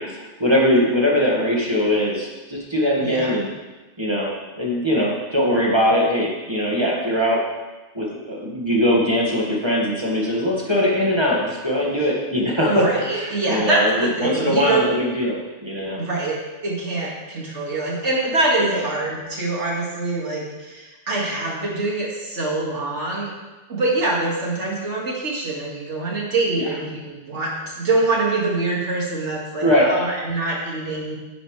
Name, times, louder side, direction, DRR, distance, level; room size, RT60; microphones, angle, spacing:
voice 1, 0.0-3.5 4.0-7.4 7.9-16.0 18.6-18.8 29.6-29.9, equal, 25° right, -4 dB, 1.8 m, -21 dB
voice 2, 3.0-3.4 12.0-12.1 12.7-14.9 16.0-16.3 16.6-23.3 23.7-31.2, right 2 dB, 80° right, -3 dB, 2.3 m, -24 dB
9.6 x 9.2 x 3.3 m, 1.2 s
omnidirectional pair, 1.2 m